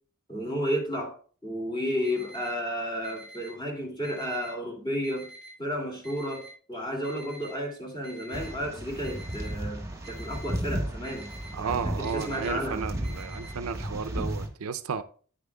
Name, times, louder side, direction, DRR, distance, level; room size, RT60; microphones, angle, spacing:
voice 1, 0.3-1.1 1.4-5.3 5.6-11.3 11.6-12.9, equal, 20° left, 2.5 m, -32 dB
Alarm, 2.0-2.5 3.0-3.5 4.0-4.5 5.0-5.5 6.0-6.5 7.0-7.5 8.0-8.5 9.0-9.5 10.0-10.5 11.0-11.5 12.0-12.5 13.0-13.5, right 2 dB, 55° left, 5.0 m, -47 dB
sound 1, 8.3-14.5, right 1 dB, 15° right, 1.3 m, -34 dB
voice 2, 11.5-15.0, right 6 dB, 70° right, 0.5 m, -33 dB
9.7 x 9.6 x 2.3 m
head